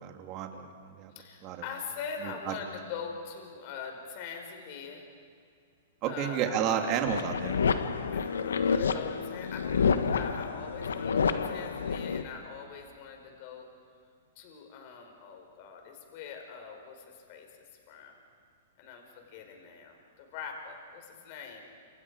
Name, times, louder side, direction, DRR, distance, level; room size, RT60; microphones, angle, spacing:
voice 1, 0.0-1.1 1.4-1.6 2.2-2.5 6.0-7.6, right 9 dB, 40° right, 4 dB, 2.9 m, -31 dB
voice 2, 1.1-5.0 6.1-6.9 8.1-13.7 14.3-17.5 17.9-18.1 18.8-21.6, left 6 dB, 50° left, 3 dB, 4.8 m, -43 dB
sound 1, 7.0-12.2, left 6 dB, 85° left, 1.3 m, -29 dB
29.5 x 27.5 x 5.0 m, 2.3 s
hypercardioid pair, 120°, 0 cm